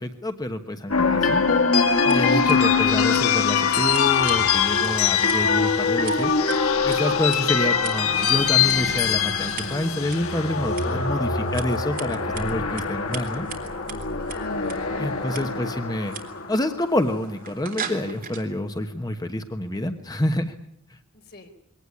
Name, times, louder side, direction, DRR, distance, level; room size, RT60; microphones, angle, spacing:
voice 1, 0.0-1.4 2.0-6.3 6.8-13.5 15.0-16.1 16.5-20.6, left 1 dB, 20° left, 7 dB, 1.2 m, -27 dB
sound 1, 0.9-17.1, left 5 dB, 90° left, 1.8 m, -23 dB
Scissors, 1.9-18.4, right 7 dB, 45° right, 3.5 m, -42 dB
voice 2, 14.2-15.9 21.1-21.5, left 3 dB, 50° left, 4 dB, 4.4 m, -46 dB
23.0 x 18.0 x 9.9 m, 0.73 s
head